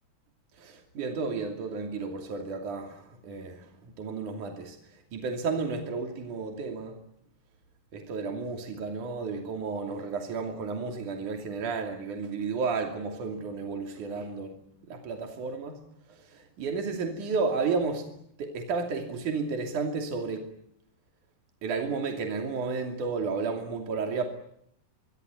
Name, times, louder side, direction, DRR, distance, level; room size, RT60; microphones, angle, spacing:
voice 1, 0.6-3.6 4.0-4.8 5.1-7.0 7.9-14.6 14.9-15.8 16.3-18.1 18.4-20.5 21.6-24.3, right 4 dB, 65° right, 4.2 m, -32 dB
25.0 x 24.0 x 9.5 m
omnidirectional pair, 3.9 m